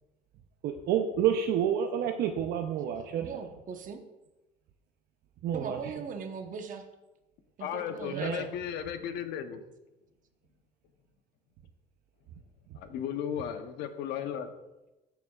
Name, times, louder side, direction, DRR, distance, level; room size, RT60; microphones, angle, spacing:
voice 1, 0.6-3.3 5.4-5.8 8.1-8.4, right 8 dB, 75° right, 5 dB, 0.6 m, -29 dB
voice 2, 3.1-4.0 5.5-6.8 7.6-8.5, right 6 dB, 50° right, 6 dB, 1.0 m, -40 dB
voice 3, 7.6-9.6 12.7-14.5, left 9 dB, 90° left, 8 dB, 0.8 m, -35 dB
13.5 x 6.9 x 2.4 m, 1.0 s
cardioid pair, 110°, 17 cm